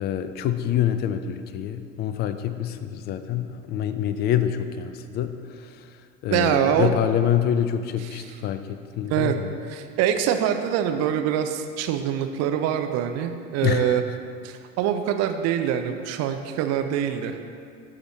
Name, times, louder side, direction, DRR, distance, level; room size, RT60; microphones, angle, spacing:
voice 1, 0.0-5.9 6.2-9.5 13.6-14.2, left 10 dB, 25° left, 10 dB, 0.4 m, -26 dB
voice 2, 6.3-6.9 8.1-8.3 9.0-9.3 9.7-14.0 14.4-17.3, right 9 dB, 40° right, 7 dB, 0.6 m, -24 dB
13.0 x 4.9 x 3.1 m, 2.3 s
figure-of-eight pair, 70°, 39 cm